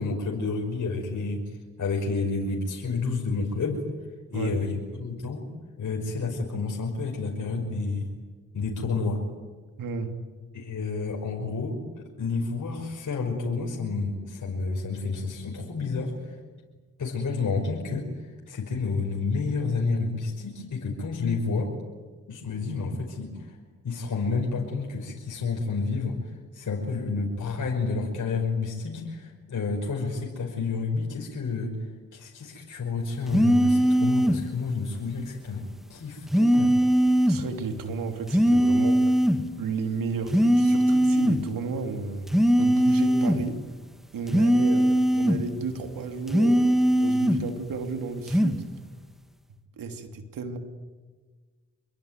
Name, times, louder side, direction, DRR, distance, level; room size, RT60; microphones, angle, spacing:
voice 1, 0.0-3.8 4.3-5.5 5.8-8.1 8.5-9.2 10.5-16.4 17.0-21.7 22.3-23.6 23.8-26.2 26.5-35.6 35.9-36.8, left 4 dB, 60° left, 0 dB, 5.6 m, -30 dB
voice 2, 9.8-10.1 37.3-39.0 39.6-42.3 42.6-43.6 44.1-48.7 49.8-50.6, right 5 dB, 75° right, 6 dB, 3.1 m, -33 dB
sound 1, 33.3-34.4 36.3-37.4 38.3-39.4 40.3-41.4 42.3-43.5 44.3-45.5 46.3-47.5 48.3-48.6, equal, ahead, 2.7 m, -21 dB
26.5 x 23.0 x 9.4 m, 1.4 s
supercardioid pair, 45°, 33 cm